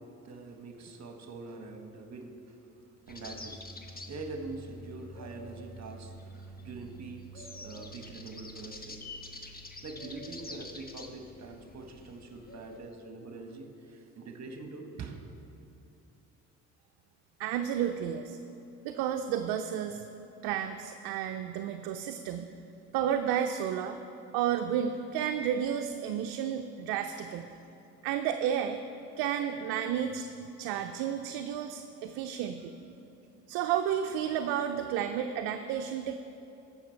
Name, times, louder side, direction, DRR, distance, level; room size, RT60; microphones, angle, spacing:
voice 1, 0.0-9.2 9.8-15.2, right 3 dB, 45° right, 5 dB, 1.2 m, -44 dB
sound 1, 3.1-12.8, left 1 dB, 25° left, 1.1 m, -46 dB
voice 2, 17.4-18.4 18.8-20.1 20.4-22.5 22.9-24.0 24.3-27.5 28.0-28.8 29.2-30.3 30.6-32.7 33.5-36.2, right 9 dB, 75° right, 6 dB, 0.5 m, -31 dB
14.5 x 5.9 x 4.5 m, 2.8 s
supercardioid pair, 60°, 38 cm